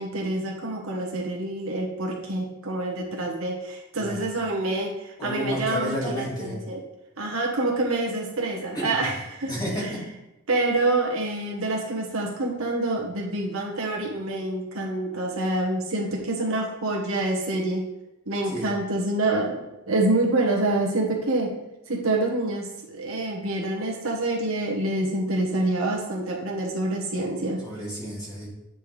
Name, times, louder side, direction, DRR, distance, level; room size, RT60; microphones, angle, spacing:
voice 1, 0.0-6.8 7.2-9.5 9.8-9.9 10.5-17.8 18.3-21.5 21.9-27.6, right 2 dB, 65° right, -1 dB, 1.2 m, -27 dB
voice 2, 4.0-4.3 5.2-6.6 8.7-9.0 9.4-10.0 18.5-18.7 27.6-28.5, equal, 20° left, -7 dB, 2.4 m, -31 dB
8.8 x 4.4 x 3.3 m, 0.95 s
head